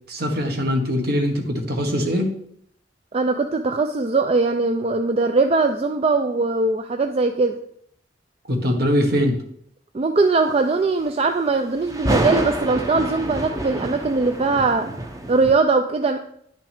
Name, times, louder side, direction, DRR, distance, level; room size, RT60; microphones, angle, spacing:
voice 1, 0.1-2.3 8.5-9.4, equal, 60° right, 3 dB, 1.4 m, -22 dB
voice 2, 3.1-7.5 9.9-14.9 15.3-16.2, right 3 dB, 35° right, 6 dB, 0.4 m, -20 dB
sound 1, 11.8-15.5, right 1 dB, 20° right, 0.8 m, -27 dB
10.5 x 5.9 x 3.5 m, 0.68 s
head